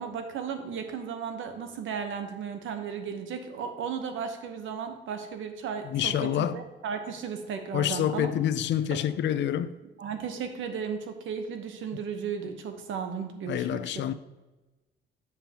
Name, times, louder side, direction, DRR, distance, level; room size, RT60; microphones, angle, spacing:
voice 1, 0.0-8.3 10.0-13.8, right 6 dB, 75° right, 1.0 m, -35 dB
voice 2, 5.8-6.6 7.7-9.8 13.5-14.1, left 10 dB, 65° left, 0.4 m, -27 dB
7.8 x 6.9 x 2.9 m
cardioid pair, 90°, 20 cm